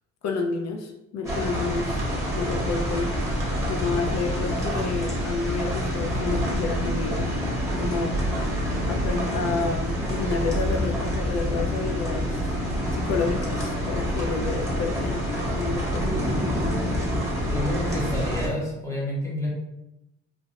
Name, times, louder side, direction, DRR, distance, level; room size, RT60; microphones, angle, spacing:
voice 1, 0.2-2.0 2.3-3.3 3.7-7.3 7.8-8.3 8.9-12.6 12.9-15.3 15.5-16.1, left 4 dB, 60° left, 4 dB, 0.6 m, -30 dB
sound 1, 1.2-18.5, equal, 10° right, 1.2 m, -27 dB
voice 2, 17.5-19.5, left 1 dB, 10° left, -4 dB, 1.1 m, -29 dB
3.3 x 2.4 x 2.6 m, 0.87 s
cardioid pair, 90°, 30 cm